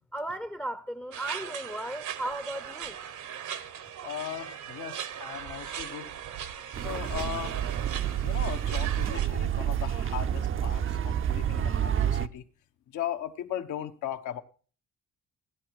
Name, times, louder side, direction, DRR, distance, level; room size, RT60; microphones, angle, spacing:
voice 1, 0.1-3.0, right 1 dB, 5° left, 0.6 m, -36 dB
sound 1, 1.1-9.3, right 9 dB, 75° right, 1.3 m, -39 dB
voice 2, 4.0-6.1 6.8-7.6 8.2-12.4 12.9-14.4, left 10 dB, 80° left, 1.1 m, -37 dB
sound 2, 6.7-12.3, right 10 dB, 45° right, 0.5 m, -29 dB
15.0 x 10.5 x 4.7 m
cardioid pair, 90°, 30 cm